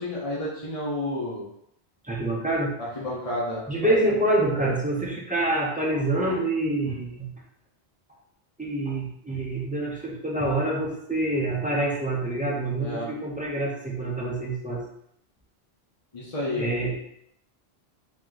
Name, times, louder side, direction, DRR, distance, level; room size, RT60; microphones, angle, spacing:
voice 1, 0.0-1.5 2.8-3.9 4.5-4.6 12.8-13.1 16.1-16.7, left 1 dB, 35° left, -7 dB, 0.9 m, -31 dB
voice 2, 2.1-2.7 3.7-7.3 8.6-14.8 16.5-17.0, right 1 dB, 10° right, -3 dB, 0.7 m, -26 dB
3.1 x 3.0 x 3.8 m, 0.72 s
omnidirectional pair, 1.1 m